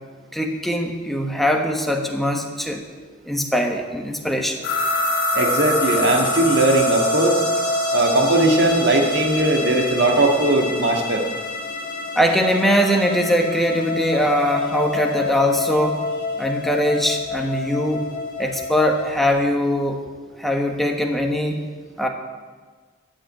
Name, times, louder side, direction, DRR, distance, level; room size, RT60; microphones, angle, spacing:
voice 1, 0.3-2.9 3.3-4.6 12.1-16.1 16.4-18.1 18.4-20.0 20.4-21.6 22.0-22.1, equal, ahead, 2 dB, 1.2 m, -21 dB
sound 1, 4.6-19.3, left 2 dB, 50° left, 2.7 m, -26 dB
voice 2, 5.4-7.4 7.9-11.2, right 2 dB, 60° right, 2 dB, 1.8 m, -19 dB
13.5 x 6.5 x 8.8 m, 1.4 s
head